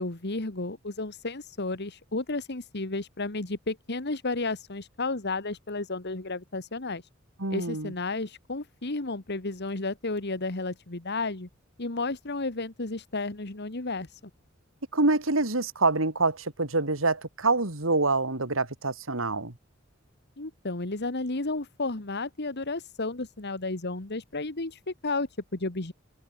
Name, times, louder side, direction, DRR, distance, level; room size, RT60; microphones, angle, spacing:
voice 1, 0.0-7.0 7.5-11.5 11.8-14.1 20.4-25.9, left 3 dB, 55° left, 1.8 m, -32 dB
voice 2, 7.4-7.9 14.9-19.5, right 3 dB, 75° right, 3.0 m, -26 dB
open air
head